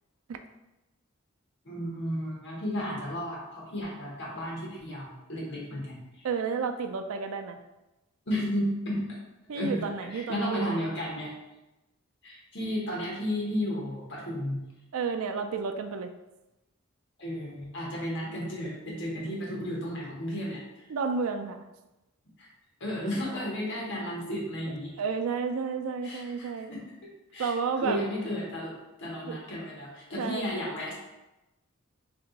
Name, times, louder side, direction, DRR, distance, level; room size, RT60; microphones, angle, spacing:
voice 1, 1.6-6.3 8.3-9.0 9.5-11.3 12.2-14.6 17.2-20.8 22.4-22.5 22.8-24.9 26.0-28.7 29.0-30.9, equal, 60° left, -3 dB, 1.4 m, -33 dB
voice 2, 6.2-7.6 9.5-10.9 14.9-16.1 20.9-21.6 25.0-26.7 27.4-28.1 29.3-29.4 30.2-30.5, right 5 dB, 80° right, 7 dB, 0.4 m, -31 dB
3.4 x 2.9 x 4.0 m, 0.99 s
head